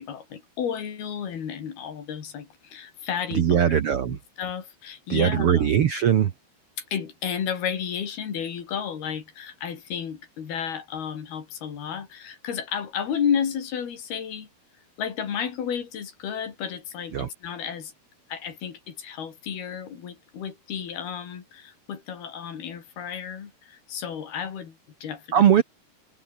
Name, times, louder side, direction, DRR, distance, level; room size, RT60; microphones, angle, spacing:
voice 1, 0.0-3.8 4.1-5.7 6.9-14.5 15.0-17.9 18.3-25.6, left 8 dB, 75° left, 5.2 m, -32 dB
voice 2, 3.3-4.2 5.1-6.3 17.1-17.3 25.3-25.6, right 9 dB, 80° right, 1.3 m, -20 dB
omnidirectional pair, 4.5 m